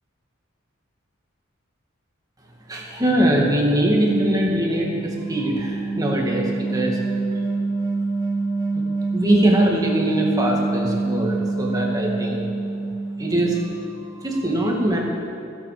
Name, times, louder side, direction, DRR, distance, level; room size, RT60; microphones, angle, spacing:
voice 1, 2.7-7.0 9.1-12.4 13.2-13.9 14.2-15.0, right 1 dB, 20° right, -2 dB, 2.2 m, -22 dB
sound 1, 4.0-14.1, right 3 dB, 25° left, 3.5 m, -26 dB
25.0 x 8.7 x 5.1 m, 2.6 s
head